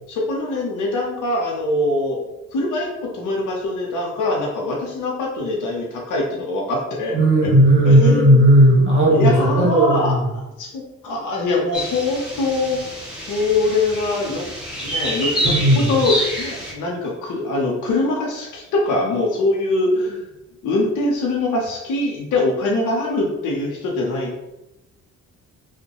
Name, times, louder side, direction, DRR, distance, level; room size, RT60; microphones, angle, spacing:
voice 1, 0.1-2.2 2.5-7.5 7.8-8.8 9.1-12.8 13.3-14.4 14.8-20.2 20.6-24.4, left 2 dB, 80° left, -2 dB, 0.7 m, -23 dB
voice 2, 7.1-10.2 15.4-15.8, right 1 dB, 40° right, -3 dB, 1.3 m, -14 dB
sound 1, 11.7-16.7, equal, ahead, 1.2 m, -27 dB
3.0 x 2.1 x 2.8 m, 0.94 s
cardioid pair, 90°, 30 cm